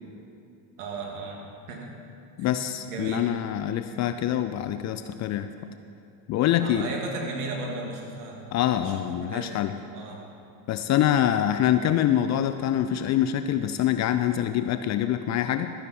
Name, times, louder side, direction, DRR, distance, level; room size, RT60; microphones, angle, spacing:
voice 1, 0.8-1.4 1.7-1.9 2.4-2.6 2.9-3.2 6.6-8.5 8.8-9.6 9.9-10.2, right 3 dB, 90° right, 0 dB, 2.2 m, -35 dB
voice 2, 2.4-5.5 6.3-6.9 8.5-9.7 10.7-15.7, left 11 dB, 40° left, 9 dB, 0.4 m, -25 dB
12.5 x 10.0 x 4.2 m, 2.5 s
supercardioid pair, 110°, 44 cm